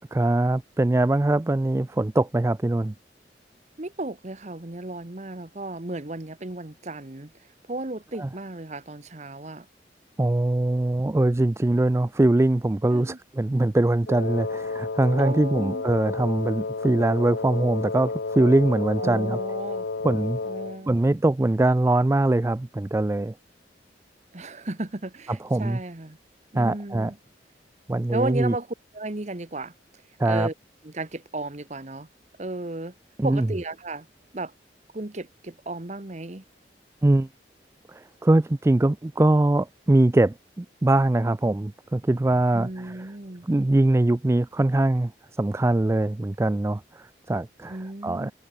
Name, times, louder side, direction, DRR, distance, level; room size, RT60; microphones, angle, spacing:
voice 1, 0.1-2.9 8.2-8.3 10.2-19.4 20.0-20.4 20.9-23.3 25.5-25.8 26.6-27.1 27.9-28.5 30.2-30.5 33.2-33.5 37.0-37.3 37.9-43.0 43.5-45.1 45.4-47.8 48.0-48.3, right 2 dB, 15° right, 0.3 m, -22 dB
voice 2, 3.8-7.3 7.7-9.7 12.9-13.2 15.2-15.8 19.0-19.8 20.4-21.0 24.3-26.2 26.5-27.2 28.1-28.7 28.9-29.7 30.2-30.5 30.8-32.1 32.4-32.9 33.2-34.1 34.3-34.5 34.9-36.4 42.5-43.5 47.7-48.3, right 2 dB, 40° right, 1.2 m, -34 dB
Wind instrument woodwind instrument, 14.1-20.8, left 3 dB, 85° left, 0.9 m, -31 dB
head